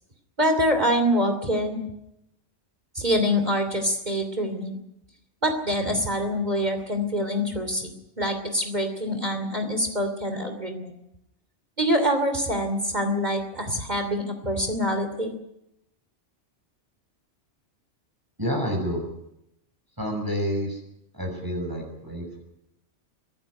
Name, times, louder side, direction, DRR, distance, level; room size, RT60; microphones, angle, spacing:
voice 1, 0.4-1.8 2.9-4.8 5.4-7.9 8.2-11.0 11.8-15.3, equal, 35° right, 6 dB, 3.0 m, -25 dB
voice 2, 18.4-19.0 20.0-20.8 21.1-22.4, equal, 15° right, 0 dB, 6.7 m, -29 dB
24.5 x 13.5 x 9.9 m, 0.83 s
omnidirectional pair, 1.2 m